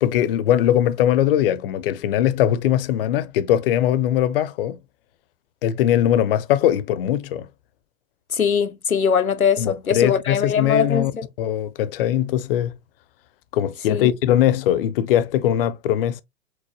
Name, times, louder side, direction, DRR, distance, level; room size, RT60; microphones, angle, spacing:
voice 1, 0.0-4.8 5.6-7.5 9.6-11.1 11.4-12.7 13.5-16.2, left 11 dB, 45° left, 0.6 m, -20 dB
voice 2, 8.3-11.3 13.9-14.1, left 7 dB, 90° left, 0.6 m, -21 dB
4.8 x 3.9 x 2.8 m
figure-of-eight pair, 100°, 41 cm